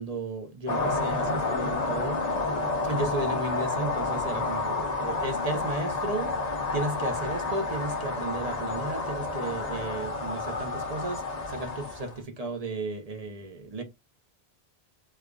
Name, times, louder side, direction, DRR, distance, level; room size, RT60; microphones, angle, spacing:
voice 1, 0.0-2.3 2.8-6.3 6.7-13.8, right 2 dB, 40° right, 0.8 m, -34 dB
sound 1, 0.7-12.2, left 3 dB, 45° left, 0.7 m, -30 dB
4.9 x 2.4 x 2.4 m
omnidirectional pair, 1.1 m